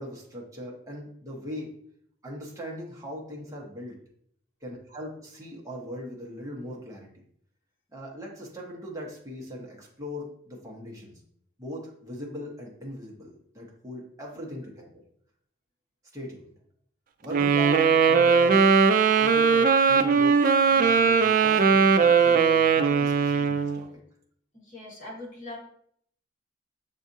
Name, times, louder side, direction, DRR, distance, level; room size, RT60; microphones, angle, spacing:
voice 1, 0.0-1.7 2.2-4.0 4.6-7.1 7.9-11.2 11.6-15.0 16.1-16.4 17.2-18.7 19.2-23.9, equal, 15° right, -2 dB, 1.0 m, -40 dB
Wind instrument woodwind instrument, 17.3-23.8, right 5 dB, 45° right, 0.3 m, -20 dB
voice 2, 24.5-25.6, left 2 dB, 40° left, -4 dB, 1.3 m, -41 dB
7.0 x 2.4 x 2.6 m, 0.65 s
head